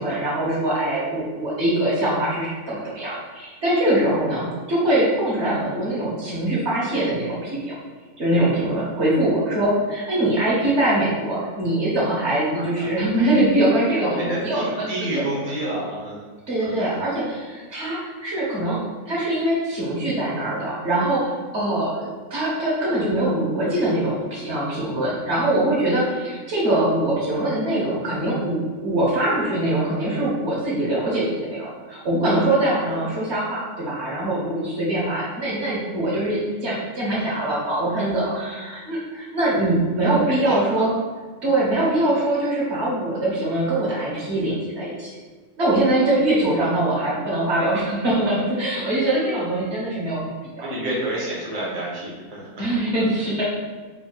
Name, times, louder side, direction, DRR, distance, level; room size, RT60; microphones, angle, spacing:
voice 1, 0.0-7.7 8.2-15.2 16.5-18.8 19.0-40.9 41.4-45.1 45.6-50.3 50.6-50.7 52.6-53.4, right 1 dB, 55° right, -6 dB, 1.3 m, -23 dB
voice 2, 14.0-16.2 16.6-17.0 32.9-33.0 39.9-40.1 40.4-40.8 50.6-52.6, right 1 dB, 30° right, -6 dB, 0.9 m, -29 dB
4.2 x 3.5 x 2.3 m, 1.4 s
omnidirectional pair, 1.5 m